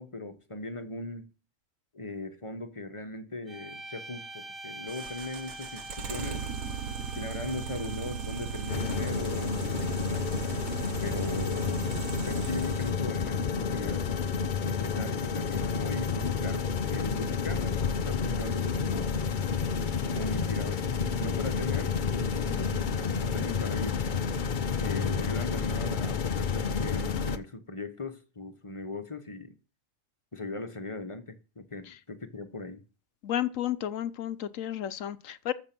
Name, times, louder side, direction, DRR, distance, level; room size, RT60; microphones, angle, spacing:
voice 1, 0.0-1.3 1.9-6.5 7.1-10.3 11.0-12.0 12.3-14.0 14.7-19.1 20.1-20.8 21.2-24.0 24.8-29.5 30.3-32.8, left 2 dB, 25° left, 1.1 m, -39 dB
sound 1, 3.5-9.2, right 1 dB, 20° right, 1.1 m, -44 dB
sound 2, 4.9-12.9, right 7 dB, 90° right, 1.6 m, -37 dB
sound 3, 8.7-27.4, left 6 dB, 45° left, 0.8 m, -30 dB
voice 2, 33.2-35.5, left 11 dB, 75° left, 1.2 m, -32 dB
14.0 x 7.0 x 6.0 m
omnidirectional pair, 1.4 m